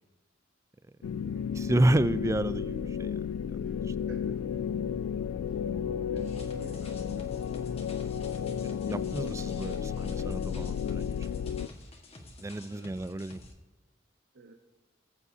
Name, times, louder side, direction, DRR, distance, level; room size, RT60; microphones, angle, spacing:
sound 1, 1.0-11.7, left 7 dB, 90° left, 0.3 m, -33 dB
voice 1, 1.6-3.2 5.2-5.4 8.6-11.2 12.4-13.4, right 1 dB, 15° right, 15 dB, 0.3 m, -30 dB
voice 2, 3.6-4.4 5.4-5.6 6.1-7.6 12.7-13.1 14.3-14.5, right 2 dB, 60° right, 2 dB, 1.0 m, -53 dB
sound 2, 6.2-13.5, left 1 dB, 30° left, 1.4 m, -49 dB
20.5 x 8.3 x 2.8 m, 1.2 s
head